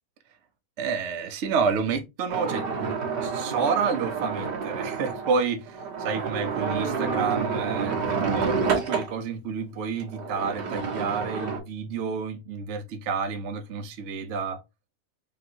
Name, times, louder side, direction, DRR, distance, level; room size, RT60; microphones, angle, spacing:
voice 1, 0.8-2.9 3.2-14.6, right 5 dB, 55° right, 0.9 m, -29 dB
sound 1, 2.3-9.1 10.0-11.6, right 5 dB, 85° right, 2.0 m, -29 dB
5.1 x 2.9 x 2.8 m
omnidirectional pair, 1.8 m